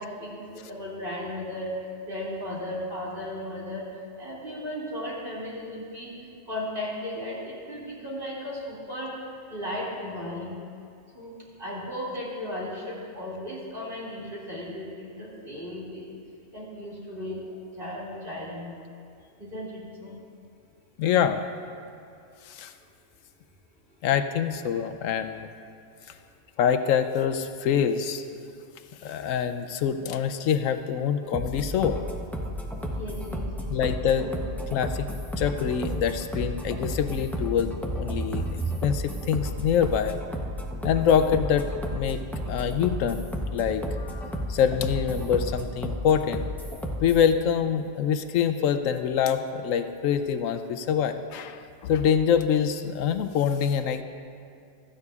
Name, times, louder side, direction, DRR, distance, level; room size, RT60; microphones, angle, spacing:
voice 1, 0.0-3.8 4.2-6.1 6.5-9.1 9.5-10.6 11.1-11.3 11.6-16.1 16.5-17.4 17.8-18.7 19.4-20.1 32.9-33.7 34.1-34.4, left 1 dB, 45° right, -6 dB, 2.6 m, -35 dB
voice 2, 21.0-21.4 22.5-22.7 24.0-25.5 26.6-28.2 29.0-32.0 33.7-34.2 34.7-35.1 35.4-38.5 38.8-40.2 40.8-42.2 42.5-43.2 43.5-46.4 47.0-54.0, left 8 dB, 80° left, 9 dB, 0.9 m, -25 dB
sound 1, 31.3-47.3, equal, ahead, 0.5 m, -32 dB
16.0 x 13.0 x 2.4 m, 2.4 s
omnidirectional pair, 1.4 m